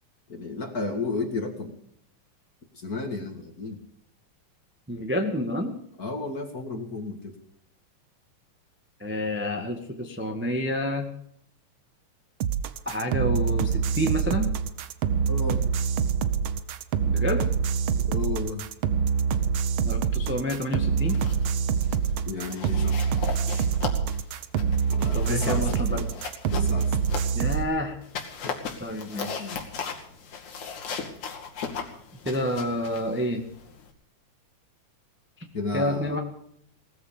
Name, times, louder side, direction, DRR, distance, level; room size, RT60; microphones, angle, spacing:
voice 1, 0.3-1.7 2.7-3.8 6.0-7.4 15.3-15.6 18.0-18.7 22.3-23.1 24.9-26.1 26.5-27.2 28.4-28.5 29.4-29.6 35.5-36.2, left 3 dB, 35° left, 5 dB, 2.0 m, -33 dB
voice 2, 4.9-5.7 9.0-11.1 12.8-14.5 17.0-17.5 19.8-21.2 25.1-26.1 27.3-28.0 28.8-29.5 32.2-33.4 35.4-35.5 35.7-36.2, equal, 5° right, 3 dB, 1.2 m, -29 dB
sound 1, 12.4-27.6, right 6 dB, 70° right, 1.2 m, -25 dB
sound 2, 20.9-21.5 21.8-22.1 22.5-27.6 28.0-33.9, left 6 dB, 75° left, 3.7 m, -37 dB
18.5 x 14.5 x 5.2 m, 0.68 s
omnidirectional pair, 3.4 m